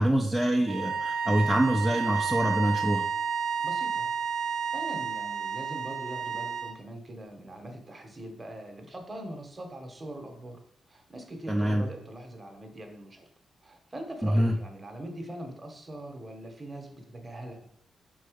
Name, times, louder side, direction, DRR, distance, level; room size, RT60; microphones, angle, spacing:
voice 1, 0.0-3.1 11.5-11.8 14.2-14.5, right 1 dB, 5° right, 0 dB, 0.5 m, -25 dB
sound 1, 0.6-6.8, right 6 dB, 85° right, 0.6 m, -31 dB
voice 2, 3.6-10.6 10.9-13.2 13.6-17.7, right 1 dB, 20° right, 4 dB, 1.0 m, -42 dB
5.4 x 3.9 x 5.0 m, 0.66 s
wide cardioid pair, 150°, 0 cm